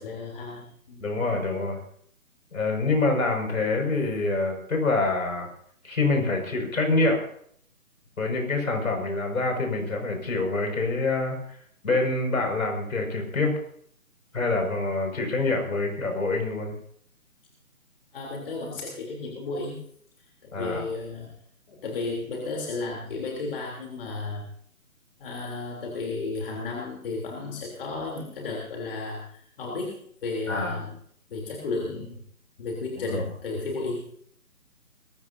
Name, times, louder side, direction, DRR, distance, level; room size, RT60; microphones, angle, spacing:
voice 1, 0.0-1.0 18.1-19.8 20.4-21.3 21.7-24.5 25.2-30.9 31.3-32.2 32.6-34.1, left 3 dB, 40° left, -1 dB, 3.6 m, -33 dB
voice 2, 1.0-1.8 2.5-5.5 5.8-7.2 8.2-11.6 11.8-13.5 14.3-16.8 20.5-20.8 30.5-30.8 33.1-33.2, left 3 dB, 70° left, 3 dB, 6.0 m, -26 dB
21.5 x 15.5 x 2.8 m, 0.62 s
hypercardioid pair, 155°, 43 cm